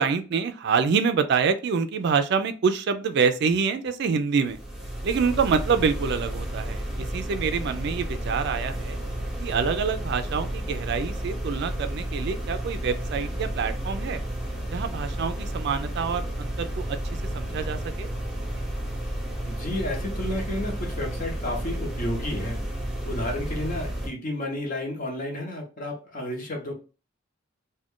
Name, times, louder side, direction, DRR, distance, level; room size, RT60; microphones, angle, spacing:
voice 1, 0.0-4.6 5.0-9.0 9.4-14.2 14.7-17.0 17.3-18.1, right 5 dB, 60° right, 10 dB, 0.3 m, -26 dB
sound 1, 4.5-24.1, right 1 dB, 5° right, 0.8 m, -32 dB
voice 2, 19.5-22.6 23.0-26.7, left 1 dB, 45° left, 1 dB, 0.8 m, -31 dB
2.4 x 2.2 x 3.5 m, 0.34 s
head